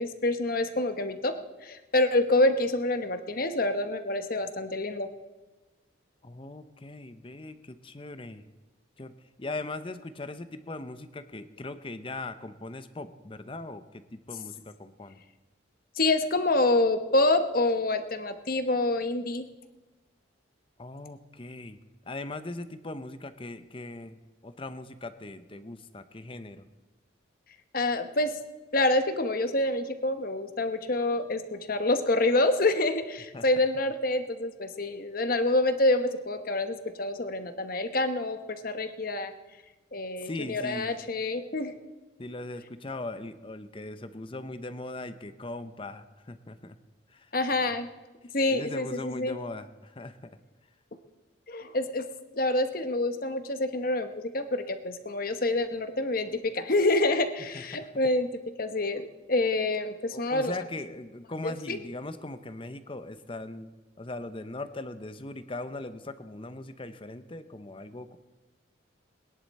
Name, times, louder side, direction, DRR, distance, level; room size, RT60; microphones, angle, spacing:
voice 1, 0.0-1.3 1.6-5.1 16.0-19.5 27.7-28.3 28.7-39.3 39.9-41.7 47.3-47.9 48.3-49.3 51.5-52.0 52.3-58.3 58.6-60.5 61.4-61.8, left 2 dB, 45° left, 8 dB, 1.0 m, -27 dB
voice 2, 6.2-8.5 9.0-15.2 20.8-21.8 22.1-26.7 33.3-33.6 40.2-41.0 42.2-46.8 47.1-47.3 48.5-50.4 57.5-57.9 60.1-63.7 64.0-68.2, left 2 dB, 25° left, 11 dB, 0.7 m, -40 dB
21.0 x 11.0 x 4.2 m, 1.2 s
head